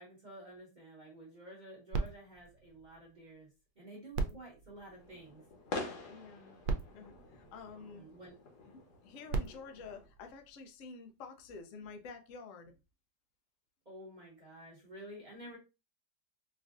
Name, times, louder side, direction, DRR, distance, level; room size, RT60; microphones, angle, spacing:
voice 1, 0.0-3.5 3.8-5.4 5.8-5.9 7.7-8.4 13.8-15.6, right 1 dB, 30° right, 1.0 m, -51 dB
sound 1, 1.9-3.6 4.1-5.7 6.4-6.5 6.6-8.2 9.0-10.9 11.6-11.7, right 4 dB, 80° right, 1.2 m, -40 dB
sound 2, 5.0-10.1, left 3 dB, 55° left, 1.0 m, -46 dB
voice 2, 6.1-6.6 6.9-8.0 9.0-12.7, left 4 dB, 80° left, 0.7 m, -49 dB
4.4 x 2.5 x 2.3 m
omnidirectional pair, 2.0 m